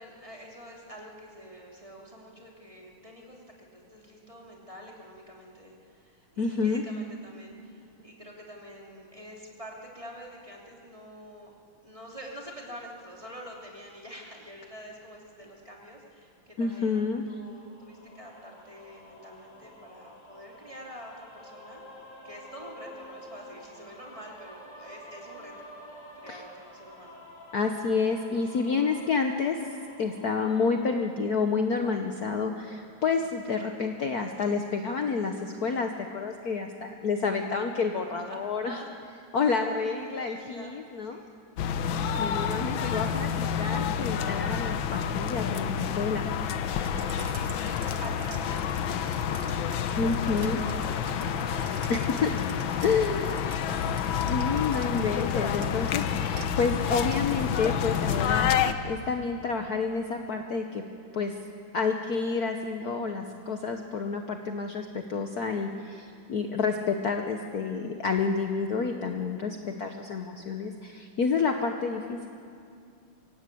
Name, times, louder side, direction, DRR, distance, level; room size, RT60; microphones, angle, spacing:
voice 1, 0.0-3.4 3.7-11.5 11.8-25.7 26.2-27.2 38.3-38.9 39.4-40.3 40.5-40.7 41.0-41.3 42.1-43.4 47.2-55.1, equal, 15° right, -2 dB, 2.9 m, -47 dB
voice 2, 6.4-6.8 16.6-17.2 26.3-26.4 27.5-29.6 30.0-38.8 39.3-41.2 42.2-46.3 50.0-50.6 51.9-52.3 52.8-53.5 54.3-58.5 58.8-60.8 61.1-61.3 61.7-72.3, left 5 dB, 55° left, 4 dB, 1.4 m, -29 dB
sound 1, 17.5-31.1, left 1 dB, 15° left, 3.1 m, -49 dB
sound 2, 41.6-58.7, left 8 dB, 70° left, 1.6 m, -29 dB
sound 3, 46.8-58.3, right 7 dB, 65° right, 1.8 m, -47 dB
24.5 x 17.0 x 8.4 m, 2.3 s
omnidirectional pair, 2.3 m